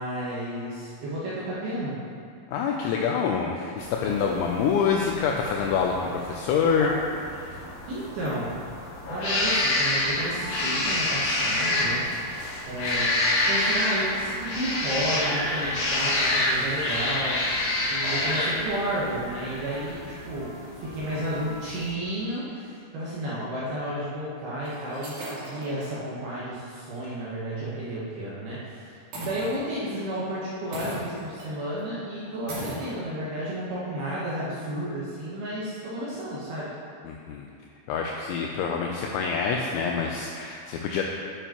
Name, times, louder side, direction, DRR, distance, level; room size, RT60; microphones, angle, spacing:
voice 1, 0.0-2.0 7.9-8.5 9.1-12.1 12.7-17.4 17.9-20.5 20.8-36.7, right 1 dB, 70° right, -8 dB, 2.4 m, -32 dB
voice 2, 2.5-7.6 37.1-37.5 37.9-41.0, left 6 dB, 85° left, 0 dB, 2.6 m, -26 dB
sound 1, 3.8-21.9, left 1 dB, 70° left, 4.0 m, -28 dB
sound 2, 10.2-16.3 16.8-21.6, right 3 dB, 85° right, 3.2 m, -43 dB
sound 3, 24.6-26.0 26.4-26.5 26.9-27.1 29.1-29.9 30.7-31.5 31.8-31.9 32.5-32.9, right 1 dB, 55° right, 2.7 m, -37 dB
11.0 x 7.2 x 2.9 m, 2.3 s
omnidirectional pair, 5.8 m